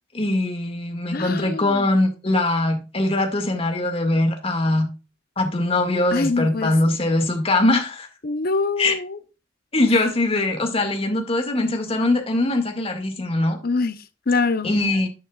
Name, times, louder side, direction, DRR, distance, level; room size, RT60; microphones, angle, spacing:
voice 1, 0.1-4.9 5.4-8.1 8.8-8.9 9.7-13.6 14.6-15.1, left 2 dB, 30° left, 1.9 m, -22 dB
voice 2, 1.1-1.9 6.1-6.7 8.2-9.2 13.6-14.0 14.3-14.8, left 3 dB, 50° left, 0.7 m, -24 dB
11.0 x 6.3 x 2.3 m
head